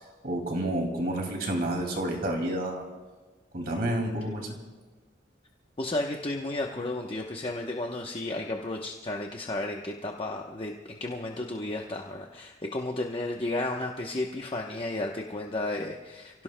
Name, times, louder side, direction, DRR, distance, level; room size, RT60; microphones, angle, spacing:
voice 1, 0.2-2.8 3.5-4.6, right 1 dB, 55° right, 1 dB, 2.4 m, -29 dB
voice 2, 5.8-16.4, left 2 dB, 30° left, 1 dB, 0.9 m, -33 dB
29.0 x 17.0 x 2.2 m, 1.4 s
head